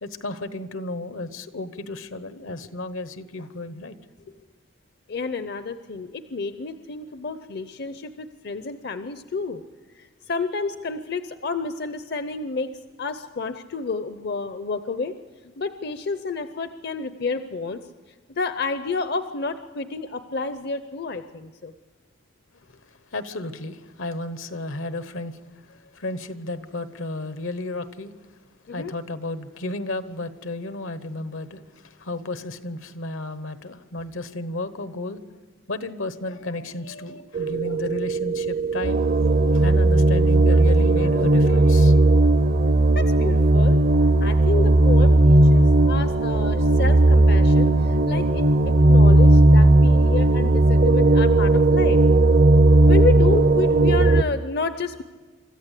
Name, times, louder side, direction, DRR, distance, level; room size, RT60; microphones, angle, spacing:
voice 1, 0.0-4.4 22.7-28.1 28.7-35.2 35.7-39.0 39.5-42.0, left 2 dB, 75° left, 1.1 m, -33 dB
voice 2, 5.1-9.6 10.0-12.7 13.0-15.1 15.6-17.8 18.4-21.7 28.7-28.9 42.9-43.8 44.2-48.4 48.9-52.0 52.9-55.0, left 4 dB, 50° left, 0.7 m, -30 dB
sound 1, 37.3-54.2, right 2 dB, 45° right, 0.6 m, -16 dB
25.5 x 14.0 x 8.3 m
head